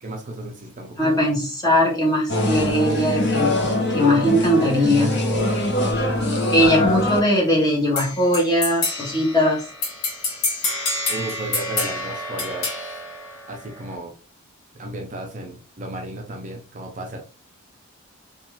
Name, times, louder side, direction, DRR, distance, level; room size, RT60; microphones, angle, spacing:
voice 1, 0.0-1.3 11.1-12.9 13.5-14.1 14.7-17.2, right 2 dB, 35° right, 1 dB, 0.4 m, -34 dB
voice 2, 1.0-3.6 3.9-5.2 6.5-9.6, equal, 20° left, -3 dB, 0.8 m, -20 dB
sound 1, 2.3-7.2, left 1 dB, 50° left, 0.6 m, -22 dB
sound 2, 8.0-13.9, left 2 dB, 75° left, 0.9 m, -28 dB
2.4 x 2.3 x 3.0 m, 0.36 s
head